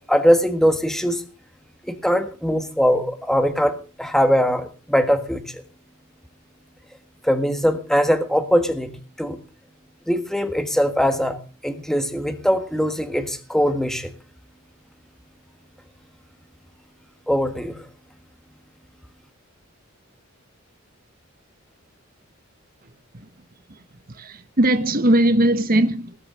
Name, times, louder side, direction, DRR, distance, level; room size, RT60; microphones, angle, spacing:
voice 1, 0.1-1.2 1.8-5.6 7.2-9.4 10.1-14.1 17.3-17.8, equal, ahead, 1.5 m, -21 dB
voice 2, 24.1-26.1, right 1 dB, 45° right, 1.2 m, -19 dB
19.5 x 6.7 x 6.6 m
head